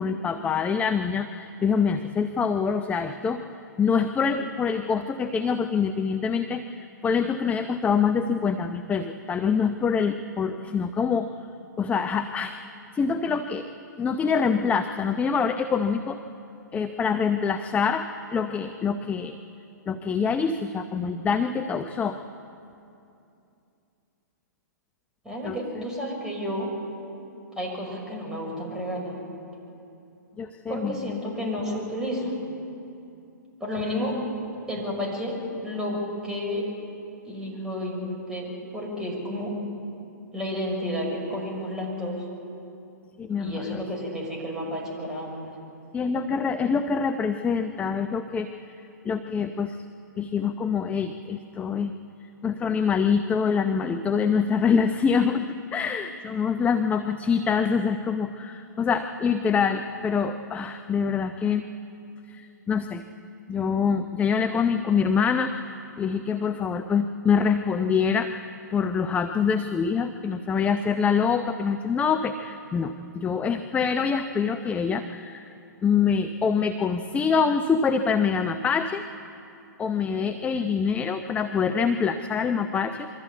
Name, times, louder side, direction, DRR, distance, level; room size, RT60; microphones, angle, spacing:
voice 1, 0.0-3.4 3.8-11.3 11.8-12.6 12.9-13.7 14.0-16.2 16.7-19.4 19.9-22.2 25.4-25.6 30.4-31.1 43.2-43.8 45.9-48.5 49.0-49.8 50.2-51.9 52.4-61.6 62.3-63.0 63.5-68.3 68.7-75.5 75.8-79.0 79.8-83.1, left 6 dB, 15° left, 8 dB, 0.7 m, -25 dB
voice 2, 25.2-26.7 27.6-29.2 30.7-32.4 33.6-34.2 34.7-36.7 37.2-39.6 40.3-42.2 43.4-45.5, equal, 5° right, -3 dB, 6.0 m, -31 dB
23.5 x 14.5 x 8.4 m, 2.7 s
hypercardioid pair, 120°, 10 cm